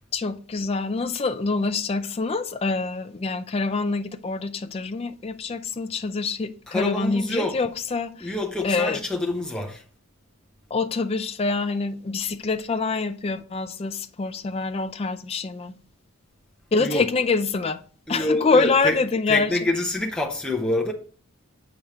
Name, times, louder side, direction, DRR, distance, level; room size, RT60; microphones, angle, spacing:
voice 1, 0.1-8.3 8.6-9.0 10.7-15.7 16.7-17.8 18.1-19.5, left 4 dB, 25° left, 0.3 m, -25 dB
voice 2, 6.7-7.6 8.2-9.8 16.8-17.0 18.1-19.0 19.3-20.9, left 1 dB, 5° left, 0.7 m, -26 dB
7.0 x 5.0 x 3.1 m
head